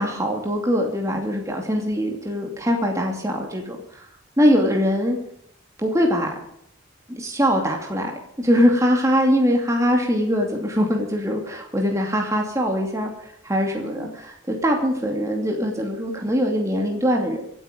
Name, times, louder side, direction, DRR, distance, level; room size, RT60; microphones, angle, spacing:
voice 1, 0.0-4.1 4.4-5.2 5.8-6.3 7.1-8.1 8.4-17.4, equal, 15° right, 1 dB, 2.5 m, -22 dB
25.5 x 9.2 x 5.2 m, 0.70 s
head